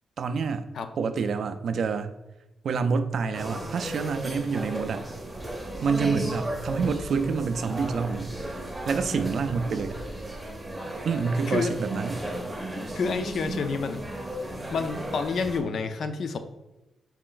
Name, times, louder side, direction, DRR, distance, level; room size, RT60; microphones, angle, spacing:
voice 1, 0.2-0.6 1.0-2.1 2.6-5.0 5.8-8.3 8.9-10.0 11.0-12.2, right 5 dB, 55° right, 9 dB, 0.3 m, -27 dB
sound 1, 3.3-15.6, right 1 dB, 10° right, 0.6 m, -35 dB
sound 2, 5.3-10.4, equal, 80° left, 1.5 m, -45 dB
voice 2, 12.7-14.0 14.7-16.4, left 5 dB, 55° left, 9 dB, 0.4 m, -29 dB
4.3 x 2.5 x 3.8 m, 0.97 s
wide cardioid pair, 140°, 0 cm